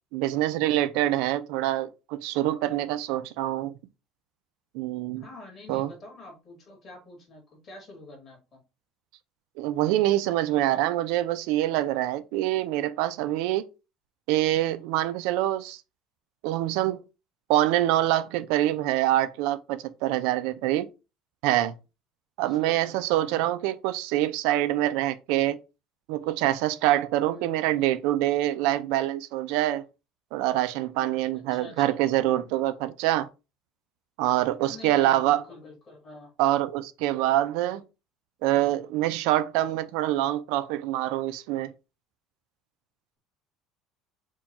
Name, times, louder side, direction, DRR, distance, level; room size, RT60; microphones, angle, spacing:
voice 1, 0.1-3.7 4.7-5.3 5.7-5.9 9.6-13.7 14.3-15.8 16.4-17.0 17.5-20.9 21.4-21.8 22.4-25.6 26.1-29.9 30.3-33.3 34.2-35.4 36.4-37.8 38.4-41.7, right 14 dB, 75° right, 0.4 m, -25 dB
voice 2, 5.2-8.6 22.4-23.5 27.3-27.9 31.3-32.0 34.6-36.3, left 2 dB, 30° left, 2.0 m, -47 dB
4.5 x 2.3 x 4.1 m
cardioid pair, 170°, 0 cm